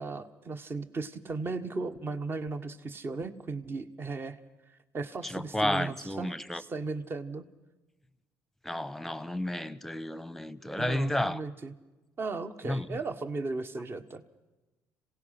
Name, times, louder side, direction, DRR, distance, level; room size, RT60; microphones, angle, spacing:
voice 1, 0.0-4.4 4.9-7.4 10.8-11.7 12.2-14.2, right 3 dB, 35° right, 1.3 m, -36 dB
voice 2, 5.2-6.6 8.6-11.4 12.6-13.0, left 1 dB, 5° left, 0.9 m, -32 dB
26.5 x 17.5 x 5.8 m
supercardioid pair, 85°, 6 cm